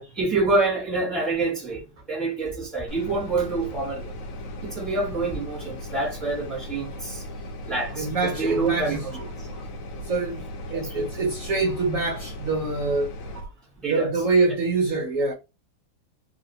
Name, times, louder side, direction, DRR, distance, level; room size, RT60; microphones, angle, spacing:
voice 1, 0.0-4.2 4.6-7.2 7.7-9.0 9.4-9.5 10.7-10.8 13.8-14.1, right 3 dB, ahead, 1.1 m, -27 dB
sound 1, 2.9-13.4, left 1 dB, 70° left, 0.8 m, -37 dB
voice 2, 7.9-9.0 10.0-10.4 10.7-13.5 13.8-15.3, right 3 dB, 75° right, 0.7 m, -25 dB
3.0 x 2.7 x 2.7 m
omnidirectional pair, 2.2 m